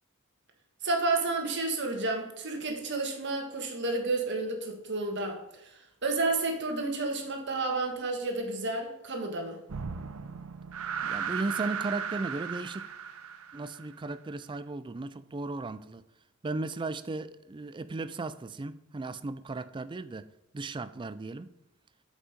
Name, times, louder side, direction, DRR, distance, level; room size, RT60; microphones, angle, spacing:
voice 1, 0.8-9.6, right 3 dB, 55° right, 1.6 m, -31 dB
sound 1, 9.7-14.1, right 7 dB, 75° right, 0.6 m, -36 dB
voice 2, 11.0-12.9 13.5-16.0 16.4-20.3 20.5-21.5, right 3 dB, 20° right, 0.3 m, -36 dB
8.4 x 5.3 x 5.1 m
head